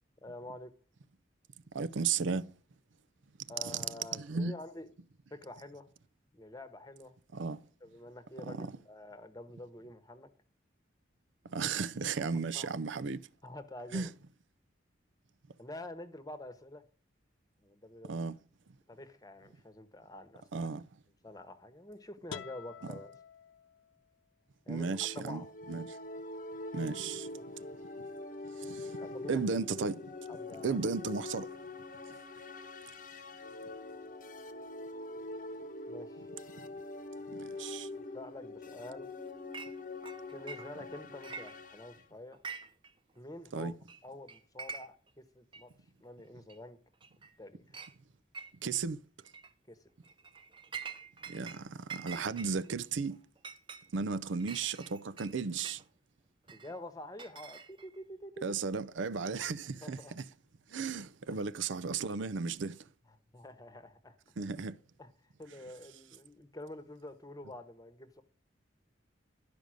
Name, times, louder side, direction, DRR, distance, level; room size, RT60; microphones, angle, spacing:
voice 1, 0.2-0.7 3.5-4.9 5.3-5.9 6.3-7.2 7.8-10.3 12.2-12.3 12.5-12.7 13.4-14.1 15.6-16.8 17.6-18.2 18.9-20.7 21.2-23.1 24.7-24.9 25.2-25.5 29.0-29.4 30.3-30.8 35.9-36.3 38.1-39.1 40.3-42.4 43.2-43.7 44.0-45.7 46.0-46.8 47.4-47.8 49.7-49.8 56.5-58.4 59.8-60.2 61.3-61.4 63.3-64.2 65.0-65.1 65.4-68.2, left 1 dB, 20° left, 1.0 m, -47 dB
voice 2, 1.7-2.5 3.6-3.8 4.1-4.5 7.3-7.6 8.4-8.7 11.4-13.3 13.9-14.1 18.0-18.4 20.5-20.8 24.7-26.0 26.7-27.3 28.0-28.1 28.6-29.0 29.3-30.1 30.6-31.6 37.3-37.9 43.5-43.7 48.6-49.0 51.3-53.2 53.9-55.8 58.4-60.2 60.7-62.9 64.4-64.8, right 5 dB, 75° right, 0.5 m, -35 dB
sound 1, 22.3-24.2, left 7 dB, 90° left, 0.5 m, -48 dB
sound 2, 24.7-42.0, left 2 dB, 45° left, 1.0 m, -44 dB
Chink clink, 39.5-39.7 40.0-40.9 41.2-41.9 42.3-42.9 43.2-43.3 43.9-44.0 44.3-45.1 45.5-45.6 46.5-46.6 47.0-47.4 47.7-47.9 48.3-48.8 49.2-49.5 50.0-51.6 51.9-55.8 56.5-58.0, right 5 dB, 25° right, 0.7 m, -46 dB
12.0 x 5.2 x 6.2 m
head